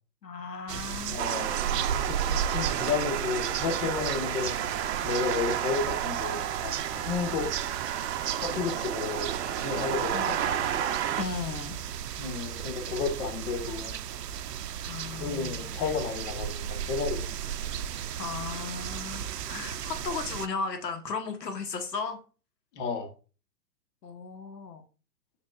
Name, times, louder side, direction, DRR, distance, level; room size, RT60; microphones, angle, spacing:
voice 1, 0.2-1.3 10.1-10.4 11.2-11.8 14.8-15.8 18.2-22.2 24.0-24.8, left 4 dB, 80° left, 5 dB, 1.5 m, -36 dB
sound 1, 0.7-20.5, right 9 dB, 75° right, 0.6 m, -35 dB
voice 2, 1.1-1.7 1.9-4.5 5.0-7.5 8.4-9.3 9.6-10.7 12.2-14.0 15.2-16.5 16.9-17.4 22.8-23.1, left 5 dB, 45° left, 5 dB, 1.5 m, -32 dB
sound 2, 1.2-11.2, right 10 dB, 45° right, 0.8 m, -32 dB
6.5 x 6.0 x 2.5 m, 0.35 s
hypercardioid pair, 125°, 48 cm